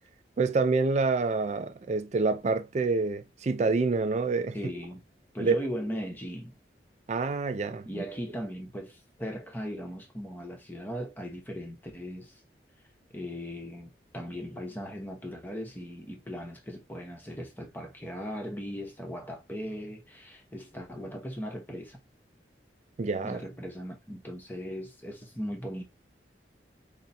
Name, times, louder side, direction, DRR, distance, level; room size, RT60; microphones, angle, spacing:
voice 1, 0.4-4.6 5.4-5.6 7.1-8.0 23.0-23.4, right 3 dB, 40° right, 0.4 m, -27 dB
voice 2, 4.5-5.0 5.3-6.5 7.9-12.4 13.1-22.0 23.2-25.8, equal, 10° left, 0.9 m, -38 dB
4.0 x 2.1 x 4.1 m
head